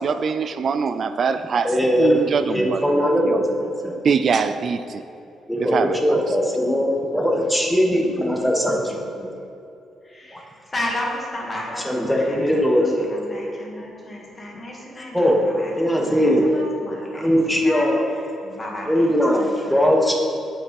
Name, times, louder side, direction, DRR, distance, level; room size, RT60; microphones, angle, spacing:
voice 1, 0.0-2.9 3.2-3.4 4.0-5.0 5.7-6.0, right 5 dB, 50° right, 10 dB, 0.3 m, -23 dB
voice 2, 1.6-2.2 2.5-4.0 5.5-9.3 10.3-10.4 11.8-13.1 15.1-15.4 15.7-16.6 17.1-18.1 18.8-20.1, equal, ahead, -1 dB, 1.2 m, -20 dB
voice 3, 10.0-12.7 13.1-17.3 17.6-17.9 18.4-19.1 19.4-19.8, left 1 dB, 25° left, -2 dB, 2.0 m, -33 dB
8.3 x 5.5 x 5.3 m, 2.8 s
cardioid pair, 90°, 0 cm